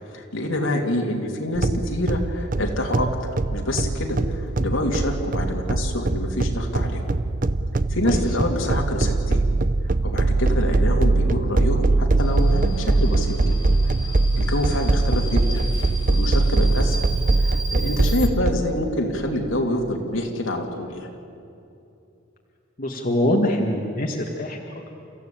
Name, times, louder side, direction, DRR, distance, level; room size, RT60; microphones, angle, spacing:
voice 1, 0.0-3.1 3.5-7.0 7.9-9.4 9.8-13.6 13.8-13.9 14.4-15.6 16.1-17.0 17.3-21.1, left 1 dB, 75° left, 1 dB, 3.0 m, -26 dB
sound 1, 1.6-18.5, right 2 dB, 40° right, 0.7 m, -22 dB
Subway metro underground, 12.2-18.3, equal, 20° left, 2.0 m, -36 dB
voice 2, 22.8-24.6, left 1 dB, 45° left, 1 dB, 1.7 m, -23 dB
29.5 x 15.0 x 8.7 m, 2.7 s
head